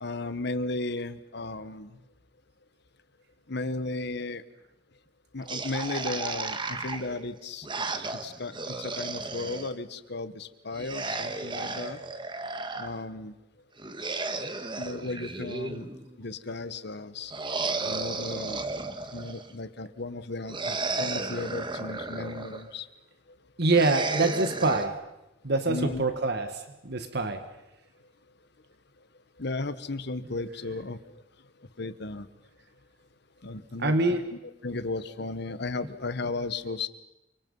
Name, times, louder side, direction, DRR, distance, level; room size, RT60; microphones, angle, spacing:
voice 1, 0.0-1.9 3.5-4.4 5.3-7.8 8.2-12.0 12.8-13.3 14.8-15.9 16.2-17.3 17.8-18.6 19.1-22.9 25.7-26.0 29.4-31.0 31.8-32.3 33.4-36.9, left 3 dB, 65° left, 13 dB, 1.3 m, -35 dB
sound 1, 5.5-9.7 10.7-12.9 13.8-16.1 17.3-19.5 20.5-22.7 23.7-24.9, right 3 dB, 25° right, 1.6 m, -34 dB
voice 2, 23.6-25.0 25.4-27.5 33.8-34.2, right 2 dB, 60° right, 8 dB, 1.6 m, -25 dB
29.0 x 25.0 x 5.6 m, 0.95 s
head